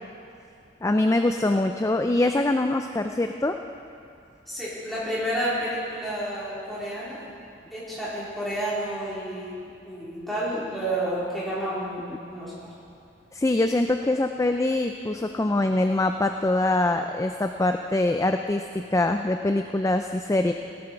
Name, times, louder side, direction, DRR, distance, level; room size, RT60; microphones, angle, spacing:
voice 1, 0.8-3.6 13.3-20.5, left 2 dB, 15° left, 6 dB, 0.3 m, -24 dB
voice 2, 4.5-7.2 7.7-9.5 9.8-12.5, right 1 dB, ahead, -10 dB, 3.9 m, -30 dB
17.5 x 11.5 x 4.5 m, 2.5 s
head